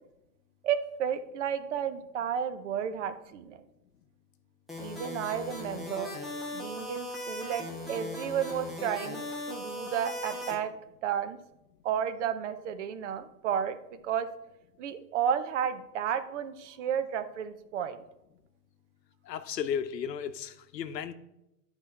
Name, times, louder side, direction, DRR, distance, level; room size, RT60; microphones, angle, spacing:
voice 1, 0.6-3.6 4.8-6.1 6.5-10.7 11.0-11.4 11.8-14.3 14.8-18.0, right 8 dB, 45° right, 0.7 m, -32 dB
sound 1, 4.7-10.5, left 2 dB, ahead, 0.5 m, -38 dB
voice 2, 19.3-21.1, left 8 dB, 90° left, 0.8 m, -34 dB
10.5 x 4.9 x 4.2 m
hypercardioid pair, 140°, 48 cm